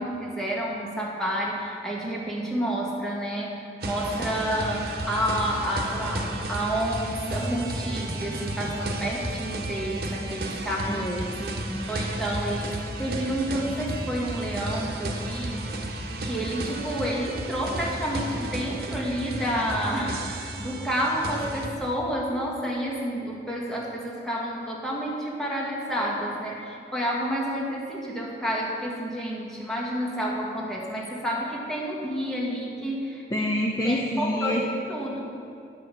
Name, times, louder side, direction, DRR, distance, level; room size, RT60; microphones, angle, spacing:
voice 1, 0.0-11.2 11.9-15.7 16.2-33.2 33.8-35.2, equal, 5° left, -4 dB, 1.7 m, -30 dB
sound 1, 3.8-21.7, right 1 dB, 60° right, 1.1 m, -33 dB
voice 2, 10.9-11.9 33.3-34.6, left 1 dB, 20° left, 0 dB, 0.6 m, -28 dB
10.5 x 6.3 x 7.3 m, 2.5 s
head